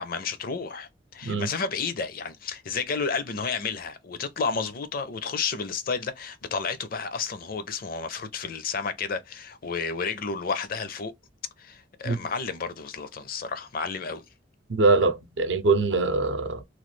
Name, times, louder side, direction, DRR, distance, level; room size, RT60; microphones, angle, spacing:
voice 1, 0.0-11.1 11.6-14.2, left 5 dB, 50° left, 0.5 m, -31 dB
voice 2, 14.7-16.6, right 3 dB, 75° right, 0.6 m, -23 dB
3.1 x 2.3 x 3.1 m
head